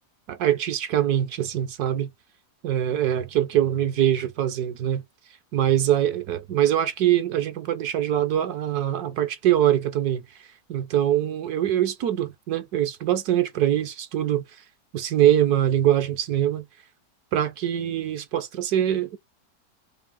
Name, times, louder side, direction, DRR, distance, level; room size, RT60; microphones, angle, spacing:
voice 1, 0.3-2.1 2.6-5.0 5.5-10.2 10.7-14.4 14.9-16.7 17.3-19.2, right 11 dB, 70° right, 1.2 m, -23 dB
4.0 x 2.8 x 3.6 m
omnidirectional pair, 1.8 m